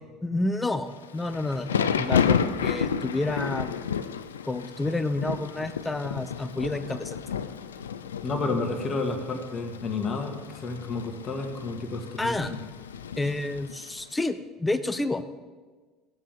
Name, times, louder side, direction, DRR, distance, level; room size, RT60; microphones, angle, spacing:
voice 1, 0.2-3.9 4.4-7.5 12.2-12.5 13.2-15.4, left 2 dB, 15° left, 12 dB, 0.8 m, -30 dB
Thunder / Rain, 1.0-14.0, left 7 dB, 90° left, 0.4 m, -31 dB
voice 2, 8.2-12.6, left 3 dB, 40° left, 3 dB, 1.9 m, -31 dB
15.5 x 7.4 x 3.6 m, 1.4 s
hypercardioid pair, 70°, 0 cm